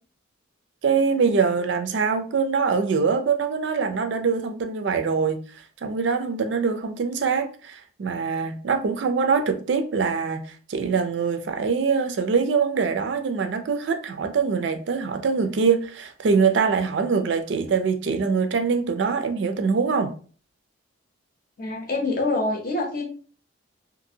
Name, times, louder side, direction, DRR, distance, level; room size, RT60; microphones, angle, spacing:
voice 1, 0.8-5.4 5.8-20.1, right 5 dB, 60° right, 0.4 m, -23 dB
voice 2, 21.6-23.0, left 2 dB, 45° left, 0.7 m, -25 dB
2.6 x 2.5 x 2.7 m
head